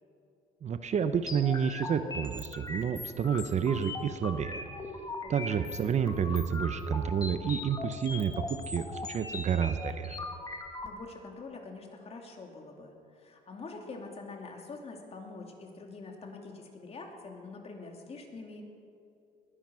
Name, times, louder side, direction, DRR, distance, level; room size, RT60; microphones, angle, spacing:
voice 1, 0.6-4.6 5.3-10.2, right 7 dB, 45° right, 10 dB, 0.8 m, -30 dB
sound 1, 1.3-10.9, left 3 dB, 20° left, 1.7 m, -40 dB
voice 2, 5.2-5.8 10.8-18.7, left 3 dB, 35° left, 2 dB, 2.7 m, -45 dB
21.5 x 10.0 x 6.3 m, 2.6 s
cardioid pair, 110°, 17 cm